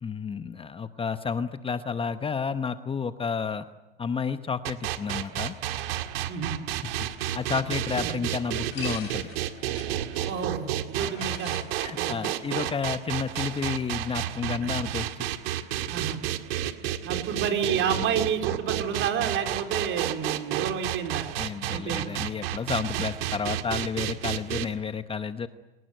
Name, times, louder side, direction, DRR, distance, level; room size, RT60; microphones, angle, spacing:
voice 1, 0.0-3.6 4.0-5.5 7.3-9.3 11.8-15.3 21.4-25.5, left 6 dB, 20° left, 10 dB, 0.9 m, -31 dB
sound 1, 4.6-24.6, right 12 dB, 75° right, 2.0 m, -31 dB
sound 2, 6.6-14.6, left 8 dB, 85° left, 4.9 m, -47 dB
voice 2, 10.2-11.6 12.0-12.1 14.6-14.7 15.9-16.2 17.1-21.3 21.7-22.1, right 7 dB, 45° right, 5 dB, 4.1 m, -30 dB
26.0 x 19.0 x 9.2 m, 1.1 s
hypercardioid pair, 105°, 30 cm